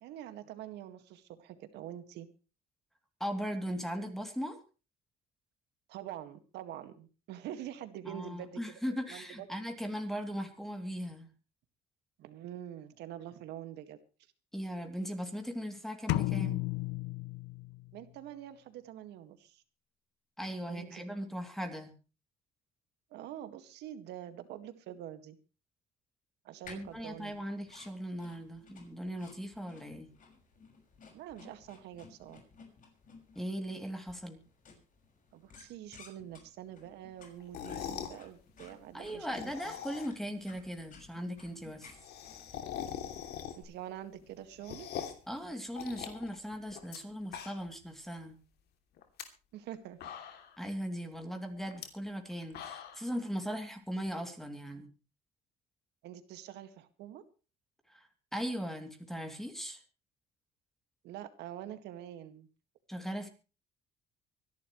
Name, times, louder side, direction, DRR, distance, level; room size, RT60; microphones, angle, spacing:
voice 1, 0.0-2.3 5.9-9.3 12.2-14.0 17.9-19.6 20.7-21.1 23.1-25.4 26.4-27.4 31.1-32.4 35.3-39.6 43.5-44.9 49.5-50.0 56.0-57.2 61.0-62.5, right 11 dB, 85° right, 10 dB, 2.0 m, -45 dB
voice 2, 3.2-4.6 8.1-11.3 14.5-16.6 20.4-21.9 26.7-30.1 33.3-34.4 38.9-42.0 45.3-48.3 50.6-54.9 57.9-59.8 62.9-63.3, equal, ahead, 5 dB, 3.0 m, -38 dB
sound 1, 16.1-18.0, left 18 dB, 90° left, 0.7 m, -33 dB
sound 2, 26.6-43.6, left 4 dB, 50° left, 6.2 m, -58 dB
sound 3, 37.4-38.2 39.2-40.3 40.6-40.7 40.9-41.0 41.3-41.4 41.6-43.8 44.2-45.3 45.8-47.0 47.2-47.8 48.2-48.3 49.0-49.2 49.7-49.8 50.0-50.6 51.7-51.9 52.3-53.1, left 9 dB, 75° left, 2.9 m, -42 dB
24.5 x 11.5 x 3.2 m, 0.34 s
cardioid pair, 110°, 17 cm